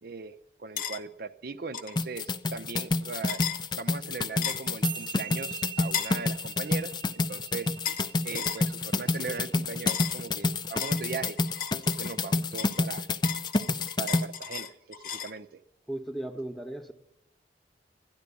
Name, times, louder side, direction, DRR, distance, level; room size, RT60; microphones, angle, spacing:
voice 1, 0.0-3.4 3.8-7.7 8.2-11.4 11.8-13.1 14.0-15.6, right 4 dB, 60° right, 9 dB, 0.6 m, -39 dB
sound 1, 0.8-1.0 1.7-2.0 3.3-3.6 4.4-4.7 5.9-6.2 7.8-8.1 8.3-8.6 9.9-10.2 10.8-12.2 12.6-15.4, left 8 dB, 50° left, 0.8 m, -34 dB
sound 2, 2.0-14.2, left 3 dB, 25° left, 0.4 m, -29 dB
sound 3, 4.8-11.4, right 12 dB, 85° right, 1.0 m, -43 dB
voice 2, 15.9-16.9, right 1 dB, ahead, 6 dB, 0.9 m, -36 dB
12.5 x 10.5 x 8.4 m, 0.87 s
head